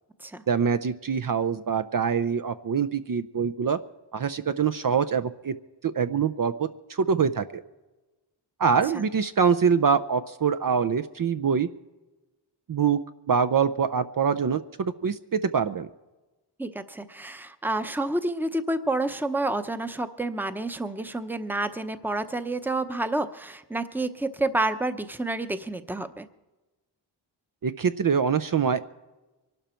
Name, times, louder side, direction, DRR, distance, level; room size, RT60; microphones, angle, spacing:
voice 1, 0.5-3.8 4.1-5.5 5.8-7.6 8.6-11.7 12.7-13.0 13.3-15.9 27.6-28.8, right 6 dB, 50° right, 11 dB, 0.6 m, -24 dB
voice 2, 16.6-26.3, right 2 dB, 5° right, 10 dB, 0.8 m, -29 dB
24.0 x 12.0 x 4.4 m, 1.1 s
wide cardioid pair, 100°, 45 cm